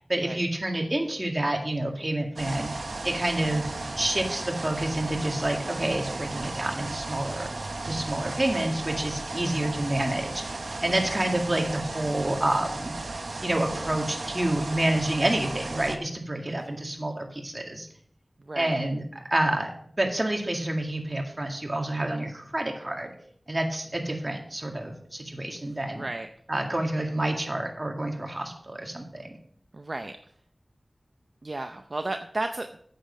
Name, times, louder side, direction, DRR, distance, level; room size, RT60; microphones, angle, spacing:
voice 1, 0.1-3.7 4.0-7.5 7.8-10.4 10.8-12.9 13.4-17.9 18.6-19.0 19.3-19.7 20.0-23.1 23.5-26.0 26.5-29.3, right 1 dB, 35° right, 2 dB, 2.0 m, -28 dB
sound 1, 2.4-16.0, right 2 dB, 80° right, 0.8 m, -35 dB
voice 2, 18.4-18.8 26.0-26.3 29.7-30.2 31.4-32.8, right 2 dB, 55° right, 6 dB, 0.6 m, -33 dB
8.8 x 7.6 x 5.0 m, 0.63 s
wide cardioid pair, 55°, 0 cm